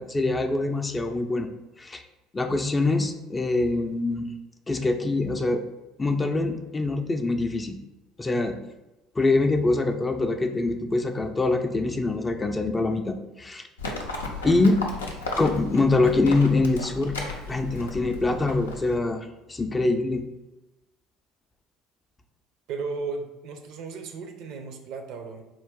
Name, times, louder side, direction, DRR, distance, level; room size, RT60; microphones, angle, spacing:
voice 1, 0.0-1.5 1.8-2.0 2.3-4.2 4.7-5.6 6.0-7.8 8.2-8.6 9.2-13.7 14.4-14.8 15.4-17.2 17.5-20.2, left 2 dB, 20° left, 5 dB, 0.4 m, -24 dB
Livestock farm animals working animals, 13.8-19.0, left 3 dB, 85° left, 0.5 m, -35 dB
voice 2, 22.7-25.4, right 4 dB, 60° right, 5 dB, 0.5 m, -35 dB
3.8 x 2.5 x 3.5 m, 1.0 s
figure-of-eight pair, 60°, 0 cm